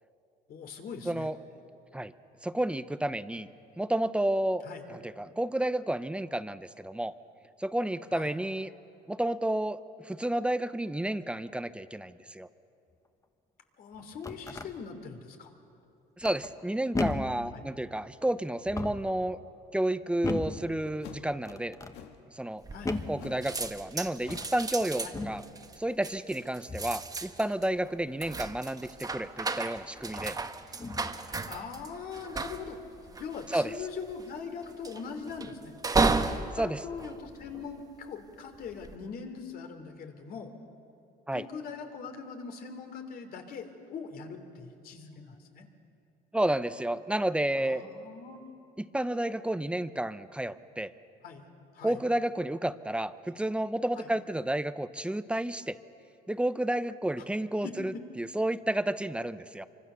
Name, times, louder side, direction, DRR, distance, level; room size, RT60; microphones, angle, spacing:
voice 1, 0.5-1.3 4.6-4.8 8.1-8.3 13.8-15.5 17.5-17.7 22.7-23.0 25.0-25.2 31.5-35.7 36.3-40.5 41.3-45.7 47.6-48.5 51.2-51.5 51.7-52.0 53.9-54.1 57.6-57.8, left 5 dB, 60° left, 6 dB, 3.0 m, -42 dB
voice 2, 1.1-1.4 1.9-2.1 2.4-3.5 3.8-4.6 4.9-7.1 7.6-8.7 9.1-12.5 16.2-19.4 19.7-21.8 22.3-22.6 23.1-25.4 25.8-30.4 33.5-33.7 36.6-36.8 41.3-41.4 46.3-47.8 48.8-50.9 51.8-55.8 56.3-59.7, right 1 dB, 5° right, 13 dB, 0.7 m, -31 dB
sound 1, 13.9-14.7 16.2-16.6 16.9-17.4 18.6-19.1 20.2-20.7 21.4-22.0 22.8-23.2 24.2-24.6 25.1-25.4 26.7-27.0 29.1-29.2 30.1-30.4 30.8-31.2, left 3 dB, 20° left, 1.3 m, -35 dB
sound 2, 21.0-21.3 21.9-22.3 23.2-23.5 23.8-23.9 24.2-24.6, left 8 dB, 80° left, 1.9 m, -47 dB
sound 3, 22.6-23.2 23.4-38.0 38.5-39.0, right 3 dB, 20° right, 1.3 m, -34 dB
25.5 x 24.5 x 6.9 m, 2.7 s
cardioid pair, 110°, 17 cm